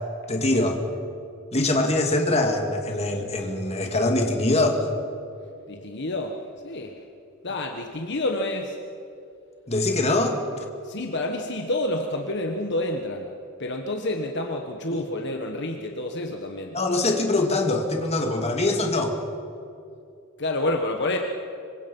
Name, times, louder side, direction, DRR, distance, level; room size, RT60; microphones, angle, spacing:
voice 1, 0.3-0.8 1.5-4.9 9.7-10.6 14.9-15.0 16.7-19.2, left 2 dB, 30° left, 3 dB, 2.4 m, -23 dB
voice 2, 5.7-7.1 7.4-8.8 10.8-13.3 13.6-16.8 20.4-21.2, left 1 dB, 55° left, 3 dB, 1.4 m, -29 dB
26.0 x 24.0 x 5.5 m, 2.6 s
head